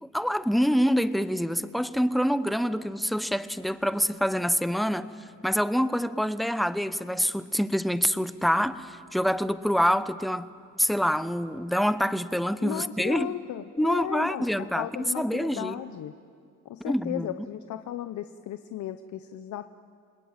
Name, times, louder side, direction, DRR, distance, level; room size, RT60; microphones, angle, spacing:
voice 1, 0.0-5.1 5.4-10.5 10.8-13.3 13.8-14.9 15.2-15.8 16.8-17.3, equal, ahead, 0.9 m, -26 dB
voice 2, 12.6-16.1 16.6-19.7, left 11 dB, 70° left, 0.9 m, -35 dB
29.0 x 20.0 x 8.9 m
cardioid pair, 90°, 30 cm